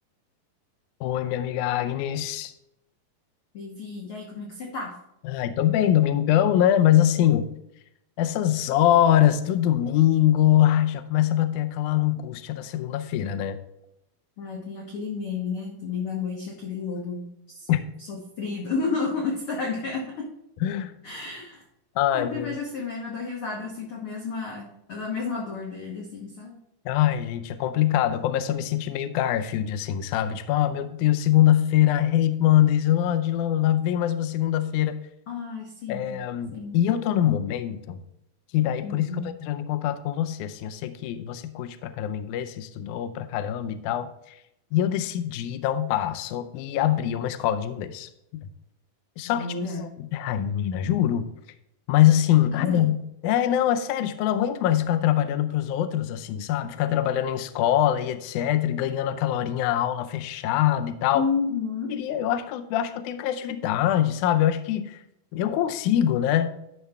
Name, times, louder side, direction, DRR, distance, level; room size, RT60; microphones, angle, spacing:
voice 1, 1.0-2.5 5.2-7.5 8.2-13.6 17.7-17.8 20.6-20.9 22.0-22.6 26.9-35.1 35.9-38.0 38.5-44.4 44.7-48.5 49.2-49.5 49.8-51.3 51.9-61.3 61.9-65.0 65.3-66.5, left 11 dB, 80° left, 10 dB, 1.8 m, -23 dB
voice 2, 3.5-5.0 14.4-17.7 18.0-20.3 21.0-21.6 22.1-26.5 35.3-36.2 36.5-36.8 38.8-39.3 49.2-49.9 52.5-52.9 61.1-61.9, left 4 dB, 65° left, -1 dB, 1.4 m, -31 dB
12.5 x 5.4 x 3.5 m, 0.81 s
omnidirectional pair, 4.1 m